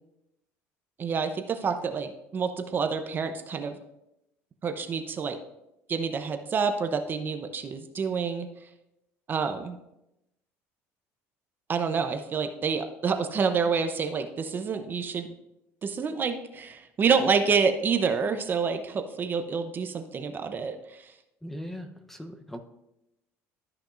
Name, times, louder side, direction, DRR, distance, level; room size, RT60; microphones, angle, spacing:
voice 1, 1.0-3.8 4.6-5.4 5.9-8.5 9.3-9.8 11.7-15.3 15.8-21.1, right 5 dB, 35° right, 8 dB, 0.6 m, -28 dB
voice 2, 21.4-22.6, equal, 5° left, 6 dB, 0.7 m, -39 dB
12.5 x 5.9 x 2.5 m, 0.87 s
cardioid pair, 110°, 6 cm